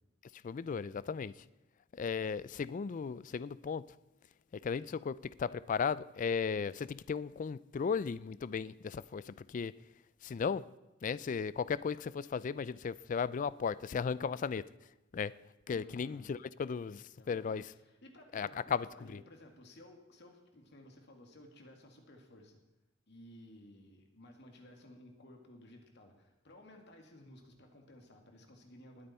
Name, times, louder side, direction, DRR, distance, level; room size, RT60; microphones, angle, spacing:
voice 1, 0.4-1.3 2.0-3.8 4.6-9.7 10.2-10.6 11.0-14.6 15.1-15.3 15.7-17.6 18.3-18.9 19.1-19.2, left 6 dB, 40° left, 0.3 m, -36 dB
voice 2, 15.7-16.3 17.2-22.6 23.1-29.1, left 1 dB, 60° left, 2.2 m, -56 dB
20.0 x 8.8 x 4.3 m
head